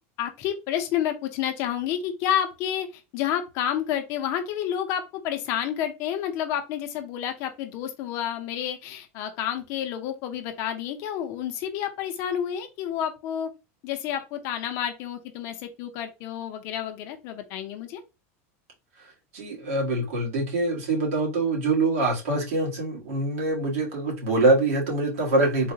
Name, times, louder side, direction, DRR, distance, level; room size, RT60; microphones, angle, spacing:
voice 1, 0.2-13.5 13.8-18.0, left 10 dB, 35° left, 0.5 m, -30 dB
voice 2, 19.3-25.7, right 2 dB, 75° right, 1.5 m, -24 dB
3.7 x 2.0 x 2.6 m
supercardioid pair, 175°, 8 cm